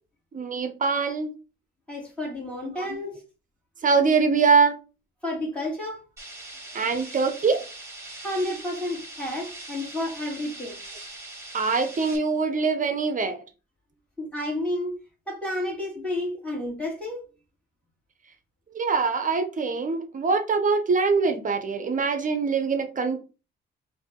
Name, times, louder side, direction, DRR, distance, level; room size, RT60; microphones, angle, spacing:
voice 1, 0.3-1.3 3.8-4.8 6.7-7.6 11.5-13.4 18.7-23.2, right 5 dB, 40° right, 0.8 m, -23 dB
voice 2, 1.9-3.2 5.2-6.0 8.2-10.8 14.2-15.0 15.3-17.2, left 1 dB, 5° left, 2.7 m, -31 dB
sound 1, 6.2-12.2, right 2 dB, 15° right, 2.2 m, -41 dB
4.5 x 2.8 x 3.7 m
cardioid pair, 90°, 20 cm